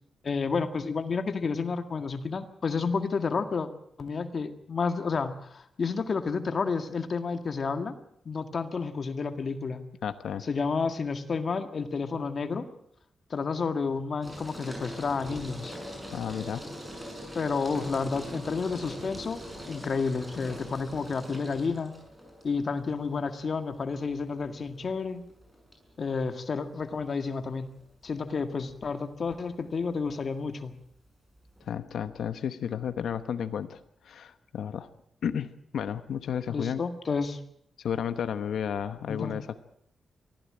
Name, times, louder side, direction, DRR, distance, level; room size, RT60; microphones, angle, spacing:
voice 1, 0.2-3.7 4.0-7.9 8.3-9.8 10.4-12.7 13.3-15.8 17.3-19.4 19.7-21.9 22.4-25.2 26.0-27.7 28.0-30.7 36.5-37.4 39.1-39.4, left 4 dB, 50° left, 8 dB, 1.8 m, -30 dB
voice 2, 10.0-10.4 16.1-16.6 31.7-33.8 34.0-34.9 35.2-36.8 37.8-39.6, left 8 dB, 90° left, 11 dB, 1.1 m, -32 dB
sound 1, 14.2-31.7, equal, 10° right, 7.0 m, -43 dB
24.0 x 15.5 x 8.8 m, 0.72 s
wide cardioid pair, 125°, 0 cm